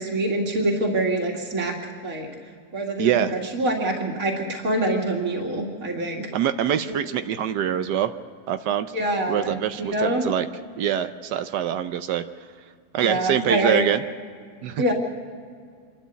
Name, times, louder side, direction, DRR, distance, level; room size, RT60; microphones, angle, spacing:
voice 1, 0.0-1.8 2.0-2.3 2.7-6.3 6.9-7.0 8.9-10.2 13.0-13.8 14.8-14.9, right 1 dB, 55° right, 0 dB, 2.7 m, -25 dB
voice 2, 3.0-3.3 6.3-8.1 8.5-8.9 9.3-10.5 10.8-12.2 12.9-14.0 14.6-14.9, right 10 dB, 85° right, 9 dB, 1.3 m, -24 dB
26.5 x 12.0 x 8.2 m, 2.1 s
omnidirectional pair, 1.7 m